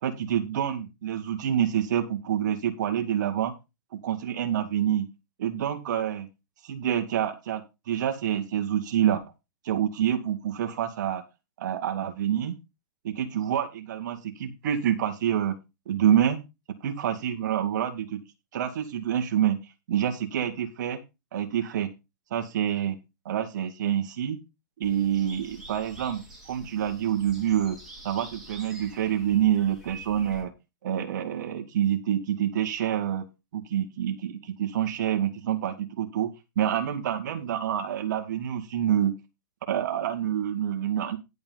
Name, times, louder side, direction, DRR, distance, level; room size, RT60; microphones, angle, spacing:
voice 1, 0.0-3.5 4.0-5.1 5.4-6.3 6.6-9.2 9.6-11.3 11.6-12.6 13.0-15.6 15.9-16.4 16.8-18.2 18.5-19.6 19.9-21.0 21.3-21.9 22.3-23.0 23.3-24.4 24.8-27.8 28.0-30.5 30.8-33.3 33.5-36.3 36.6-39.1 39.7-41.2, right 10 dB, 60° right, 6 dB, 2.1 m, -27 dB
sound 1, 24.8-30.4, right 2 dB, ahead, 4.2 m, -47 dB
11.0 x 7.8 x 3.9 m, 0.25 s
hypercardioid pair, 130°, 11 cm